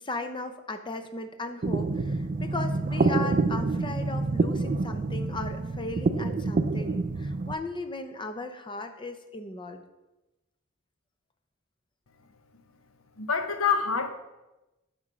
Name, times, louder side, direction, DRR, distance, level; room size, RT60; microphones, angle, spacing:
voice 1, 0.0-9.8, left 2 dB, 25° left, 8 dB, 0.6 m, -37 dB
sound 1, 1.6-7.5, right 3 dB, 40° right, 0.4 m, -27 dB
voice 2, 13.2-14.1, left 6 dB, 85° left, 8 dB, 0.9 m, -26 dB
8.5 x 5.2 x 5.0 m, 1.0 s
head